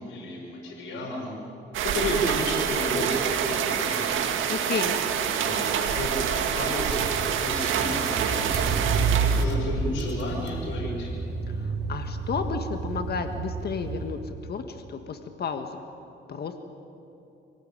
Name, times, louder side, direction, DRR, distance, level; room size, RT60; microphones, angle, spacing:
voice 1, 0.0-1.3 1.8-4.1 5.2-11.1, left 1 dB, 80° left, -4 dB, 6.9 m, -32 dB
sound 1, 1.7-9.5, right 8 dB, 85° right, 2.0 m, -26 dB
voice 2, 4.5-5.0 11.6-15.8 16.3-16.6, left 5 dB, 55° left, 6 dB, 1.8 m, -32 dB
Car / Engine, 5.8-5.9 6.1-14.5, right 4 dB, 60° right, 2.3 m, -30 dB
27.5 x 18.0 x 9.0 m, 2.9 s
cardioid pair, 90°, 20 cm